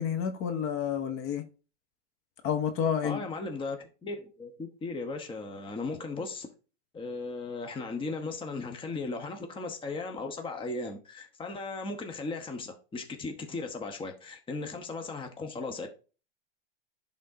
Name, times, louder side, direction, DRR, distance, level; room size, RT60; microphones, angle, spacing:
voice 1, 0.0-1.4 2.4-3.2, left 8 dB, 40° left, 1.0 m, -29 dB
voice 2, 3.0-6.5 6.9-15.9, left 3 dB, 15° left, 1.0 m, -37 dB
11.0 x 3.7 x 2.7 m
hypercardioid pair, 115°, 35 cm